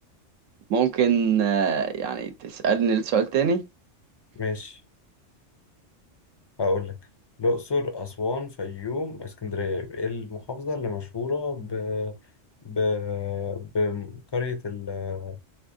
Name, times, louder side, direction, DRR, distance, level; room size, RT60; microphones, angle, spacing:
voice 1, 0.7-3.6, right 7 dB, 90° right, 1.0 m, -23 dB
voice 2, 4.4-4.8 6.6-7.0 7.4-12.2 12.6-15.4, left 3 dB, 45° left, 0.3 m, -29 dB
3.4 x 3.0 x 2.6 m
omnidirectional pair, 1.3 m